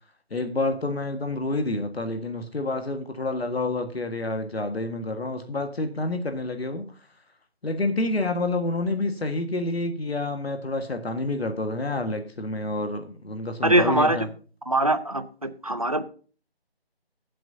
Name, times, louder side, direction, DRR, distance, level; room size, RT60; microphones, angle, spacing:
voice 1, 0.3-6.9 7.6-14.3, left 2 dB, 70° left, 6 dB, 1.6 m, -28 dB
voice 2, 13.6-14.3 14.7-16.0, right 1 dB, 35° right, 11 dB, 0.6 m, -22 dB
20.0 x 7.6 x 2.7 m, 0.39 s
figure-of-eight pair, 180°, 32 cm